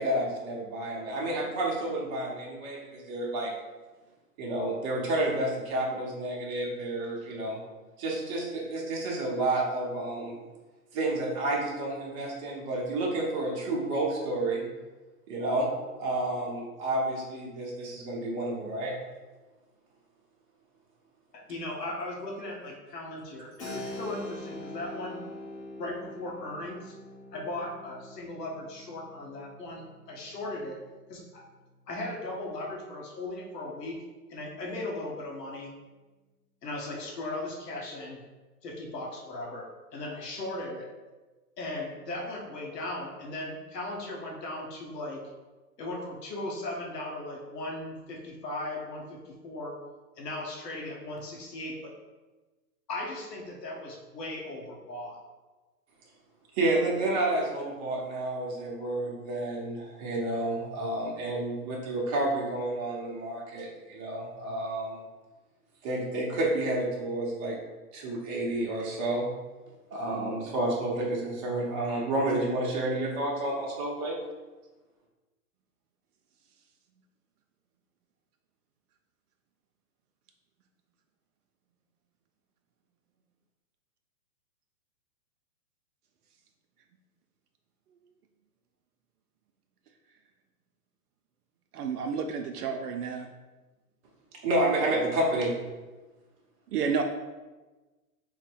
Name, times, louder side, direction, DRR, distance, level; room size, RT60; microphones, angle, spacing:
voice 1, 0.0-3.5 4.4-7.6 8.0-10.4 10.9-14.6 15.3-15.7 16.0-19.0 23.6-23.9 56.5-65.0 65.8-67.6 67.9-69.3 69.9-74.2 94.4-95.5, right 2 dB, 20° right, -2 dB, 0.6 m, -30 dB
voice 2, 21.3-25.2 25.8-26.9 27.3-30.8 31.1-31.4 31.9-35.7 36.6-38.2 38.6-40.9 41.6-45.2 45.8-49.8 50.2-52.0 52.9-55.2, left 2 dB, 90° left, -2 dB, 1.0 m, -37 dB
Keyboard (musical), 23.6-32.0, left 1 dB, 15° left, 0.6 m, -44 dB
voice 3, 91.7-93.3 96.7-97.0, right 6 dB, 70° right, 4 dB, 0.5 m, -30 dB
3.8 x 2.1 x 4.4 m, 1.2 s
hypercardioid pair, 140°, 48 cm